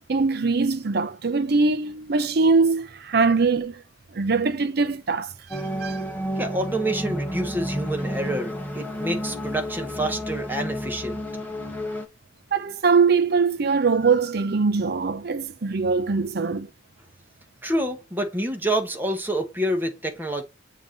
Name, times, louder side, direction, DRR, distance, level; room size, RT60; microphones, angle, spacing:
voice 1, 0.1-3.8 4.1-6.0 12.5-16.7, right 4 dB, 55° right, 0.6 m, -22 dB
sound 1, 5.5-12.1, equal, 10° left, 1.1 m, -31 dB
voice 2, 6.4-11.2 17.6-20.4, right 1 dB, 10° right, 1.1 m, -27 dB
7.1 x 2.9 x 5.2 m
head